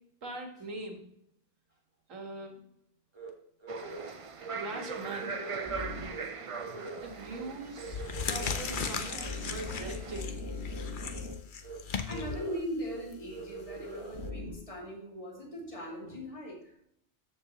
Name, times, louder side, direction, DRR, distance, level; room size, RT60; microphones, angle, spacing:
voice 1, 0.2-1.1 2.1-2.6 4.5-5.3 6.9-9.2 9.5-10.4, right 2 dB, 80° right, 2 dB, 2.0 m, -42 dB
sound 1, 3.2-3.3 3.6-4.1 4.4-4.5 4.8-6.2 6.6-7.1 7.3-7.5 7.8-11.3 11.6-11.8 12.1-12.6 12.9-13.0 13.3-14.5, equal, 20° right, 1.2 m, -41 dB
sound 2, 3.7-10.2, right 5 dB, 45° right, 0.4 m, -41 dB
sound 3, 7.0-7.3 7.8-14.3, left 6 dB, 50° left, 0.8 m, -38 dB
voice 2, 12.0-16.8, equal, 25° left, -2 dB, 2.4 m, -40 dB
13.5 x 5.1 x 3.0 m, 0.74 s
omnidirectional pair, 1.3 m